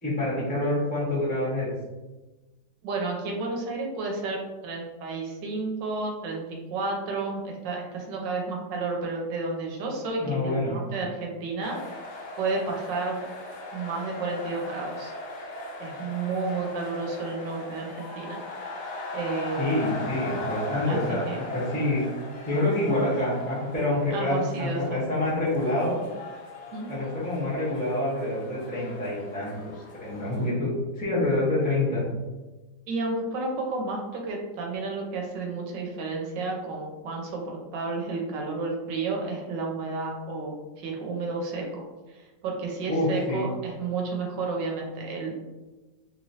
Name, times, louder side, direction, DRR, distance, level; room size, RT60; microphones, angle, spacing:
voice 1, 0.0-1.7 10.2-10.8 19.6-21.2 21.5-22.0 22.5-26.0 26.9-29.7 30.0-30.7 30.9-32.0 42.9-43.5, left 1 dB, 5° left, -8 dB, 0.7 m, -27 dB
voice 2, 2.8-6.4 6.7-11.8 12.4-13.2 13.7-15.1 15.8-18.4 19.1-19.8 20.9-21.0 21.3-21.5 24.1-25.1 26.7-26.9 32.9-41.9 42.1-45.3, right 3 dB, 90° right, 0 dB, 1.3 m, -31 dB
sound 1, 11.6-30.5, left 2 dB, 80° left, 0.6 m, -39 dB
3.0 x 3.0 x 2.7 m, 1.2 s
omnidirectional pair, 1.9 m